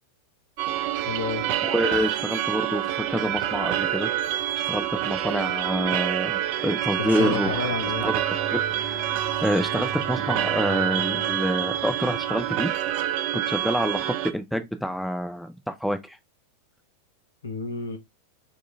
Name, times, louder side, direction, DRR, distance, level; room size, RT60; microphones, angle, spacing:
sound 1, 0.6-14.3, right 12 dB, 45° right, 0.5 m, -27 dB
voice 1, 1.1-1.5 7.0-8.1 17.4-18.0, left 4 dB, 70° left, 1.2 m, -30 dB
voice 2, 1.6-4.1 4.7-7.7 8.0-8.2 8.5-12.7 13.3-16.2, equal, ahead, 0.6 m, -27 dB
sound 2, 7.7-13.1, equal, 75° right, 1.7 m, -41 dB
4.7 x 3.1 x 3.4 m
figure-of-eight pair, 90°, 0 cm